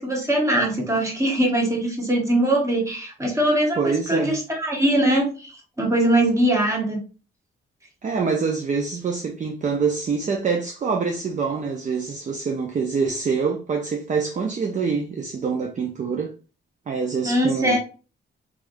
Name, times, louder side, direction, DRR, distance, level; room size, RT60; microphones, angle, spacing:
voice 1, 0.0-7.0 17.2-17.8, right 1 dB, 15° right, 1.3 m, -21 dB
voice 2, 3.8-4.4 8.0-16.3 16.9-17.8, right 5 dB, 40° right, 0.5 m, -25 dB
3.6 x 3.4 x 2.5 m
cardioid pair, 120°, 20 cm